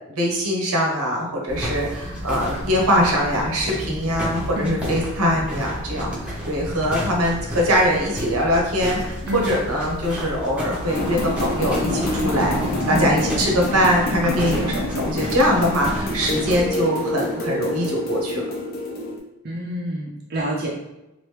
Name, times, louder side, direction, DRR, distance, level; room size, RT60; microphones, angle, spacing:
voice 1, 0.1-18.4, equal, 80° right, 0 dB, 0.9 m, -22 dB
sound 1, 1.5-16.7, equal, 5° right, 0.7 m, -30 dB
sound 2, 10.9-19.2, left 1 dB, 40° left, 0.6 m, -27 dB
voice 2, 19.4-20.7, equal, 45° right, -4 dB, 0.5 m, -28 dB
3.0 x 2.5 x 3.2 m, 0.95 s
head